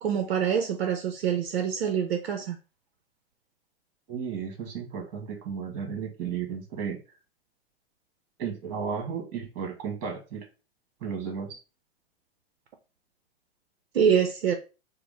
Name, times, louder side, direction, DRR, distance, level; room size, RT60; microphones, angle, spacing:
voice 1, 0.0-2.6 13.9-14.6, right 8 dB, 70° right, 0.7 m, -25 dB
voice 2, 4.1-7.0 8.4-10.5 11.0-11.6, right 6 dB, 40° right, 1.6 m, -34 dB
4.7 x 2.1 x 3.6 m
hypercardioid pair, 110°, 32 cm